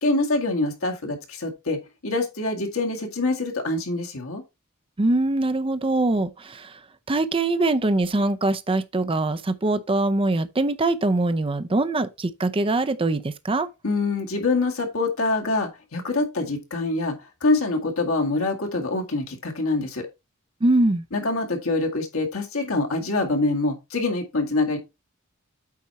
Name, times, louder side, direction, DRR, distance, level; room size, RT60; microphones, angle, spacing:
voice 1, 0.0-4.4 13.8-20.1 21.1-24.8, left 2 dB, 75° left, 2.0 m, -25 dB
voice 2, 5.0-6.8 7.1-13.7 20.6-21.0, right 2 dB, 25° right, 0.6 m, -23 dB
8.4 x 4.5 x 4.2 m
head